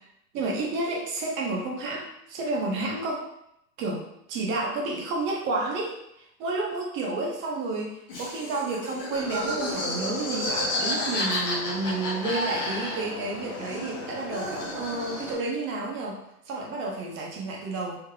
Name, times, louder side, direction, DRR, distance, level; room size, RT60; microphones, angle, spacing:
voice 1, 0.3-3.3 3.8-4.0 4.3-16.2 16.5-18.0, right 2 dB, 25° right, -1 dB, 0.6 m, -31 dB
Laughter, 8.1-13.3 13.5-15.5, left 1 dB, 20° left, 0.3 m, -31 dB
sound 1, 9.1-15.3, left 2 dB, 75° left, 1.3 m, -40 dB
3.3 x 3.2 x 2.2 m, 0.79 s
hypercardioid pair, 115°, 48 cm